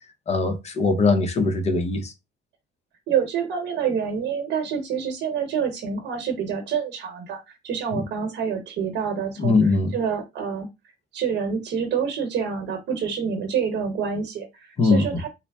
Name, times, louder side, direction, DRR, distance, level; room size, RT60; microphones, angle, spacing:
voice 1, 0.3-2.1 7.9-8.0 9.4-9.9 14.8-15.1, left 3 dB, 35° left, 0.7 m, -21 dB
voice 2, 3.1-10.7 11.1-15.3, right 7 dB, 70° right, 1.0 m, -27 dB
4.0 x 2.1 x 3.4 m
cardioid pair, 145°, 19 cm